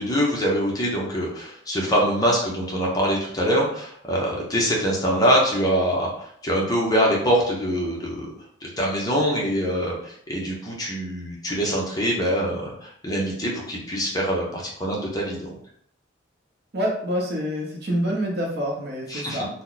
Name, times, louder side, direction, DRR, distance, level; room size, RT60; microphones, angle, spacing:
voice 1, 0.0-8.3 8.6-15.5 19.1-19.4, equal, 20° left, -3 dB, 0.7 m, -24 dB
voice 2, 16.7-19.5, equal, 50° right, -1 dB, 0.8 m, -26 dB
2.9 x 2.2 x 3.9 m, 0.66 s
head